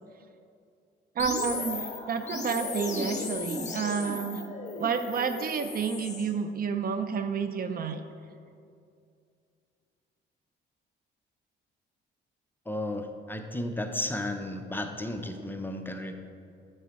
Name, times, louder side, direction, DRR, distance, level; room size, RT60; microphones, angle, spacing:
sound 1, 1.2-6.3, left 3 dB, 35° left, 1.0 m, -35 dB
voice 1, 1.2-4.4 4.8-8.0, right 6 dB, 50° right, 9 dB, 0.5 m, -30 dB
voice 2, 12.7-16.2, left 1 dB, 10° left, 5 dB, 0.6 m, -34 dB
8.4 x 4.4 x 4.7 m, 2.4 s
cardioid pair, 90°, 20 cm